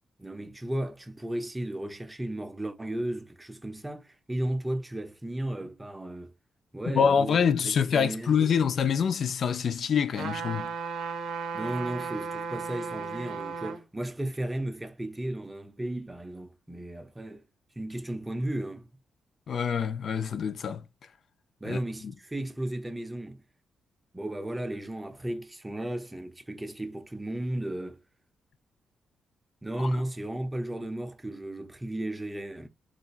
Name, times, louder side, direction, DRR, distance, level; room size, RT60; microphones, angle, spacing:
voice 1, 0.2-6.3 6.7-7.4 7.6-8.6 11.5-17.4 17.8-18.9 21.6-23.4 24.1-28.0 29.6-32.7, right 1 dB, 10° right, 0.5 m, -34 dB
voice 2, 6.9-10.7 19.5-20.8 21.6-22.1 29.8-29.9, left 7 dB, 50° left, 0.4 m, -26 dB
sound 1, 10.2-13.8 14.3-14.4, right 5 dB, 80° right, 0.8 m, -35 dB
4.0 x 2.4 x 2.3 m
cardioid pair, 145°, 0 cm